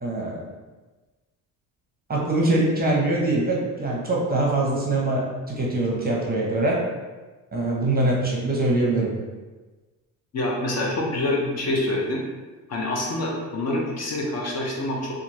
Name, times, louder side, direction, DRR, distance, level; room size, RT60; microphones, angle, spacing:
voice 1, 0.0-0.4 2.1-6.8 7.5-9.1, right 2 dB, 25° right, -2 dB, 0.7 m, -23 dB
voice 2, 10.3-12.2 12.7-15.1, left 1 dB, 45° left, -2 dB, 0.7 m, -26 dB
2.8 x 2.4 x 2.7 m, 1.3 s
cardioid pair, 90°, 37 cm